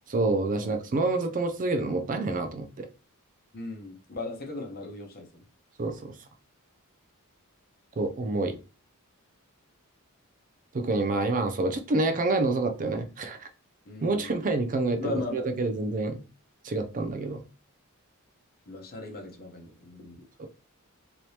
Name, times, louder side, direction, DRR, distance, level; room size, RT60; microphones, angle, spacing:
voice 1, 0.1-2.9 5.8-6.1 8.0-8.6 10.7-13.5 14.0-16.2 16.6-17.4 20.4-20.5, right 2 dB, 35° right, 7 dB, 0.4 m, -27 dB
voice 2, 3.5-5.4 13.8-14.3 15.0-15.4 18.7-20.2, left 3 dB, 45° left, 1 dB, 0.8 m, -38 dB
3.2 x 2.9 x 2.7 m, 0.33 s
head